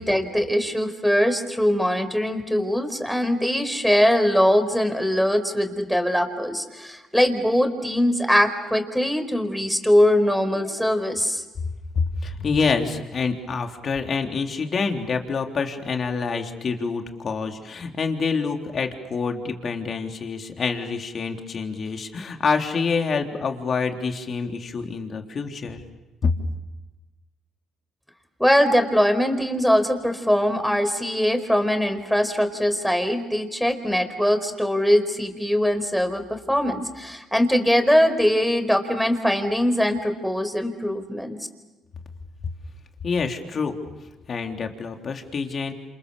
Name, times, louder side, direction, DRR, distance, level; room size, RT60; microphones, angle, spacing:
voice 1, 0.0-11.4 28.4-41.4, equal, ahead, 8 dB, 4.6 m, -21 dB
voice 2, 12.0-25.8 26.2-26.3 43.0-45.7, left 5 dB, 45° left, 4 dB, 3.6 m, -27 dB
28.5 x 28.0 x 7.1 m, 1.1 s
supercardioid pair, 65°, 0 cm